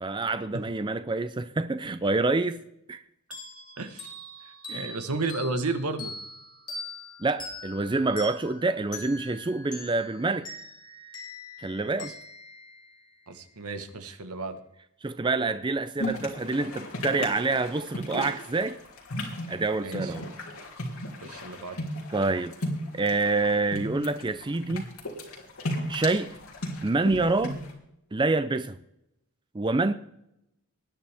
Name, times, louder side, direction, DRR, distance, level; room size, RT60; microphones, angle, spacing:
voice 1, 0.0-2.6 2.9-3.0 4.7-4.9 7.2-10.5 11.6-12.1 15.0-18.8 19.5-20.2 22.1-22.6 22.9-24.9 25.9-26.4 26.8-27.6 28.1-28.8 29.5-29.9, right 3 dB, 20° right, 0.4 m, -27 dB
sound 1, 3.3-13.6, left 2 dB, 20° left, 3.1 m, -43 dB
voice 2, 3.8-4.1 4.4-6.1 12.0-12.1 13.3-14.6 19.8-20.1 21.2-21.8, right 3 dB, 80° right, 1.3 m, -33 dB
sound 2, 16.0-27.7, left 1 dB, 65° left, 3.3 m, -36 dB
19.5 x 10.0 x 3.5 m
head